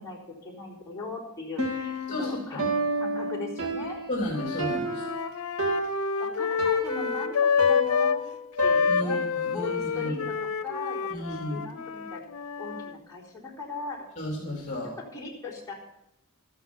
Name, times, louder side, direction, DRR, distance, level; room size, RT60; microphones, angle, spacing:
voice 1, 0.0-4.0 6.2-8.4 8.6-9.2 9.5-12.2 12.6-14.1 15.0-15.7, left 3 dB, 15° left, -5 dB, 4.1 m, -39 dB
Piano, 1.6-9.4, equal, 75° right, 2.3 m, -31 dB
voice 2, 2.1-2.4 4.1-5.1 8.9-10.1 11.1-11.6 14.2-14.9, left 1 dB, 30° left, -2 dB, 3.4 m, -33 dB
Wind instrument woodwind instrument, 4.3-8.2 8.6-12.9, left 6 dB, 85° left, 0.7 m, -28 dB
14.0 x 12.5 x 5.5 m, 0.82 s
head